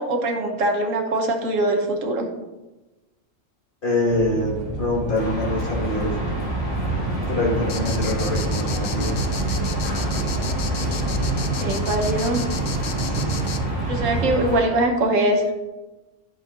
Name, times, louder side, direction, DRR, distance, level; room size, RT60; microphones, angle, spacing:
voice 1, 0.0-2.3 11.4-12.4 13.9-15.4, right 1 dB, 80° right, 3 dB, 1.4 m, -22 dB
voice 2, 3.8-6.5 7.3-9.3 13.1-13.6, left 1 dB, 40° left, -3 dB, 2.0 m, -25 dB
sound 1, 4.1-14.4, right 2 dB, 30° right, 1.0 m, -27 dB
sound 2, 5.2-14.7, equal, 85° left, 2.7 m, -31 dB
sound 3, 7.7-13.6, left 7 dB, 60° left, 0.5 m, -34 dB
11.0 x 6.3 x 2.5 m, 1.1 s
omnidirectional pair, 1.3 m